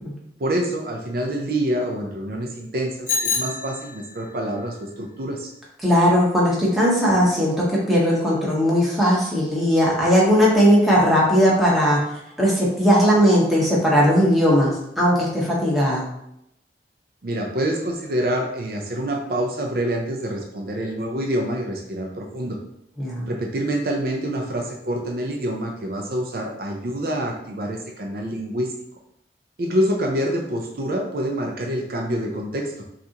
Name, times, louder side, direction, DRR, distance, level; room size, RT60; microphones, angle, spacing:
voice 1, 0.4-5.5 17.2-22.6 23.3-28.7 29.6-32.7, right 1 dB, 55° right, 1 dB, 0.5 m, -26 dB
Bicycle bell, 3.1-4.3, left 4 dB, 45° left, 0.6 m, -26 dB
voice 2, 5.8-12.0 12.4-16.1 23.0-23.3, equal, ahead, -6 dB, 1.0 m, -18 dB
5.7 x 2.5 x 2.9 m, 0.79 s
head